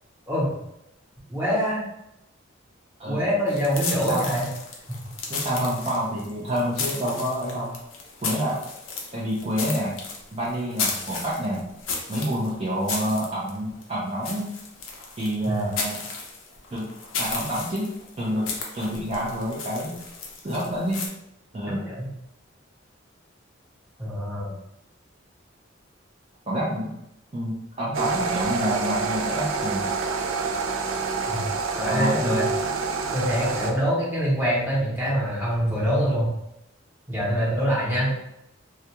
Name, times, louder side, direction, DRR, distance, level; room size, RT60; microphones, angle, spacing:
voice 1, 1.3-1.9 3.1-4.4 15.5-15.7 21.9-22.1 24.0-24.5 31.3-31.4 31.8-32.5 33.1-36.3 37.1-38.1, equal, 10° right, -8 dB, 0.9 m, -24 dB
sound 1, 3.5-21.1, left 4 dB, 85° left, 0.5 m, -34 dB
voice 2, 4.0-4.3 5.3-7.7 8.2-8.6 9.1-9.9 10.3-11.7 12.1-14.5 15.2-16.0 16.7-16.9 17.2-17.9 18.2-18.5 18.7-20.0 20.4-21.0 21.5-21.8 26.5-26.9 27.3-29.9 31.9-32.4, equal, 30° right, -8 dB, 0.5 m, -28 dB
sound 2, 27.9-33.7, right 4 dB, 85° right, 0.3 m, -27 dB
2.3 x 2.2 x 2.9 m, 0.83 s
head